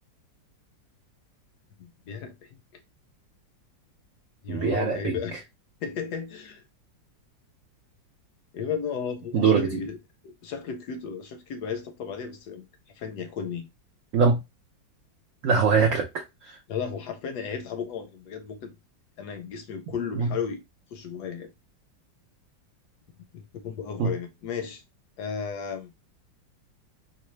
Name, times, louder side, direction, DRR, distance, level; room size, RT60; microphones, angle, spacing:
voice 1, 1.8-2.8 4.4-5.4 5.8-6.6 8.5-10.0 10.2-12.7 12.9-13.7 16.7-18.7 19.2-20.6 20.9-21.5 23.3-24.8 25.2-25.9, left 6 dB, 70° left, 1.0 m, -34 dB
voice 2, 4.5-5.2 9.3-9.8 14.1-14.4 15.4-16.6 20.2-20.3 24.0-24.1, right 5 dB, 90° right, 0.7 m, -23 dB
4.0 x 2.1 x 3.1 m
omnidirectional pair, 2.0 m